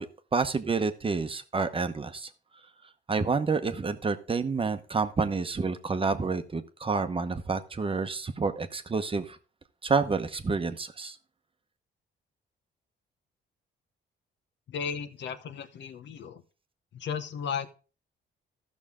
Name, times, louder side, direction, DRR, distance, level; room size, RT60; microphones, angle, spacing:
voice 1, 0.0-2.3 3.1-9.4 9.8-11.2, right 4 dB, 25° right, 9 dB, 0.9 m, -29 dB
voice 2, 14.7-16.4 16.9-17.7, left 7 dB, 65° left, 10 dB, 1.0 m, -35 dB
14.0 x 6.3 x 3.6 m, 0.35 s
cardioid pair, 90°, 20 cm